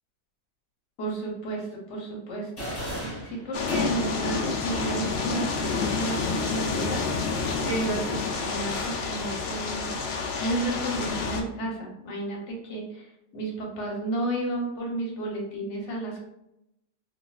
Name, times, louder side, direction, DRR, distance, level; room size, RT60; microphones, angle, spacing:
voice 1, 1.0-2.5 3.2-7.0 7.6-8.2 8.5-10.0 10.4-16.3, right 2 dB, 55° left, -2 dB, 1.0 m, -32 dB
sound 1, 2.6-4.3, equal, 25° left, 1.2 m, -35 dB
sound 2, 3.5-11.4, left 4 dB, 85° left, 0.5 m, -29 dB
3.1 x 2.7 x 2.3 m, 0.84 s
omnidirectional pair, 1.6 m